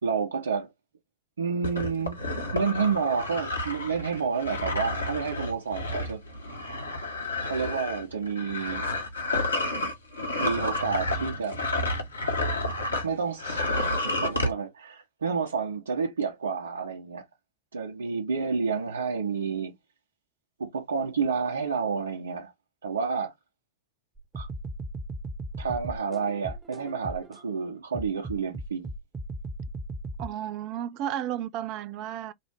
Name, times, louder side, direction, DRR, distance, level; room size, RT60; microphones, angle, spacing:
voice 1, 0.0-0.7 1.4-2.2 2.5-6.2 7.4-8.9 10.4-11.6 13.0-17.2 17.7-19.8 20.6-22.5 22.8-23.3 24.3-24.5 25.6-28.9, right 5 dB, 70° right, 1.2 m, -30 dB
sound 1, 1.6-13.1 13.4-14.5, left 2 dB, 80° left, 1.0 m, -30 dB
sound 2, 24.2-27.4 27.9-30.3, right 1 dB, 15° right, 0.8 m, -37 dB
voice 2, 30.2-32.3, right 11 dB, 40° right, 0.5 m, -33 dB
5.2 x 2.1 x 3.2 m
figure-of-eight pair, 90°, 0 cm